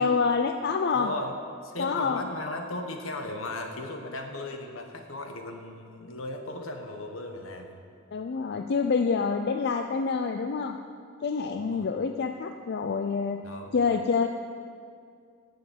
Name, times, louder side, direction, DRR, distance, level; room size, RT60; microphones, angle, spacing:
voice 1, 0.0-1.1 1.8-2.3 8.1-10.8 11.2-13.4 13.7-14.3, left 5 dB, 55° left, 6 dB, 0.4 m, -27 dB
voice 2, 0.9-1.3 1.6-7.8 11.6-11.9 13.4-13.8, left 2 dB, 80° left, 4 dB, 1.2 m, -37 dB
10.0 x 6.9 x 8.0 m, 2.3 s
head